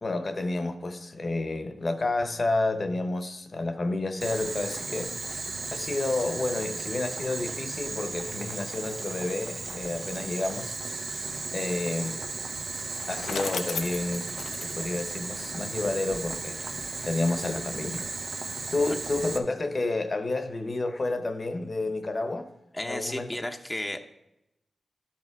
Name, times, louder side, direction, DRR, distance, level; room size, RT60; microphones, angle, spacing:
voice 1, 0.0-5.4 5.7-11.1 11.5-12.2 13.1-14.3 14.6-16.6 17.0-18.1 18.7-22.5 22.8-23.3, left 2 dB, 45° left, 0.9 m, -30 dB
Boiling, 4.2-19.4, right 3 dB, 65° right, 0.9 m, -35 dB
Bicycle, 12.7-15.9, left 6 dB, 90° left, 0.5 m, -37 dB
voice 2, 22.7-24.0, left 1 dB, 10° left, 0.7 m, -33 dB
12.5 x 5.7 x 4.6 m
cardioid pair, 60°, 0 cm